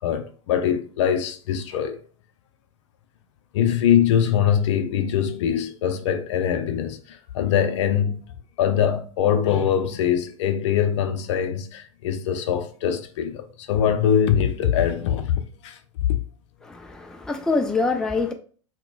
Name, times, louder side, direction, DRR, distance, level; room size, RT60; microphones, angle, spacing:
voice 1, 0.0-2.0 3.5-8.2 8.6-16.2, left 9 dB, 65° left, 0.5 m, -23 dB
voice 2, 16.6-18.3, left 3 dB, 5° left, 0.4 m, -25 dB
5.8 x 2.2 x 2.3 m
hypercardioid pair, 100°, 17 cm